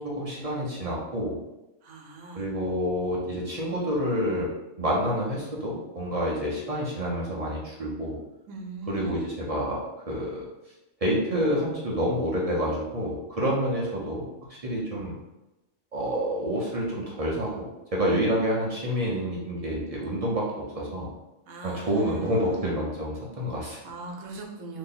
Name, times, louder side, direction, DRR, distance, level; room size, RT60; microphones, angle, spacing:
voice 1, 0.0-1.4 2.3-4.5 4.8-8.2 8.9-10.4 11.0-15.1 15.9-20.5 20.7-21.1 21.6-23.8, equal, 40° right, -4 dB, 0.5 m, -28 dB
voice 2, 1.8-2.4 8.5-9.3 21.5-22.6 23.8-24.8, right 3 dB, 80° right, 1 dB, 1.1 m, -40 dB
2.9 x 2.7 x 3.8 m, 0.99 s
omnidirectional pair, 1.4 m